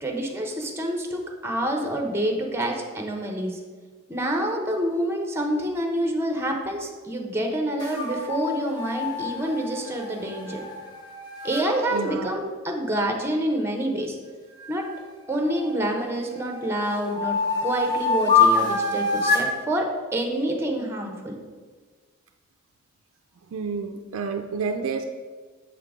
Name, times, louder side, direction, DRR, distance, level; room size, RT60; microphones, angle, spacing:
voice 1, 0.0-3.6 4.1-10.6 11.4-14.2 14.7-14.9 15.3-21.4, right 1 dB, 10° right, 2 dB, 0.7 m, -27 dB
sound 1, 7.8-11.6 14.6-15.8 16.3-19.5, left 4 dB, 20° left, 1.1 m, -26 dB
voice 2, 11.9-12.3 23.5-25.0, right 5 dB, 85° right, 4 dB, 0.4 m, -29 dB
7.0 x 3.8 x 4.8 m, 1.4 s
head